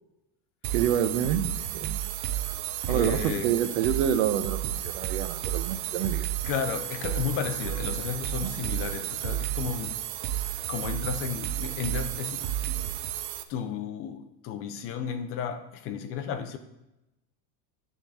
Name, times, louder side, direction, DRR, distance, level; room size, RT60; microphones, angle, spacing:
sound 1, 0.6-13.4, right 12 dB, 40° right, 0.6 m, -32 dB
voice 1, 0.7-2.0 2.9-6.3 8.4-8.5, right 9 dB, 75° right, 10 dB, 0.9 m, -27 dB
voice 2, 2.9-3.5 6.4-10.0 10.7-12.9 13.5-16.6, left 8 dB, 35° left, 9 dB, 0.5 m, -33 dB
10.5 x 3.7 x 7.2 m, 0.93 s
cardioid pair, 175°, 43 cm